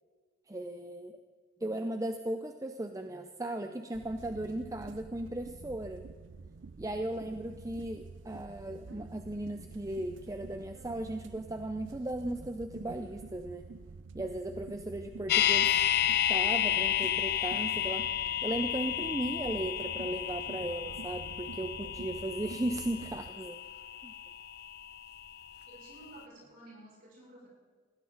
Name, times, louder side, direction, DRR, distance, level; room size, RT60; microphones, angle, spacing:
voice 1, 0.5-1.2 1.6-6.0 6.8-13.7 14.1-15.7 16.3-18.1 18.4-23.6 24.0-24.1, right 1 dB, 15° right, 7 dB, 0.6 m, -36 dB
sound 1, 3.9-23.3, right 4 dB, 70° right, 0.5 m, -48 dB
sound 2, 15.3-25.3 25.6-25.7, left 10 dB, 50° left, 0.6 m, -31 dB
voice 2, 25.7-27.5, right 1 dB, 45° right, -3 dB, 6.5 m, -52 dB
20.0 x 16.0 x 4.0 m, 1.5 s
head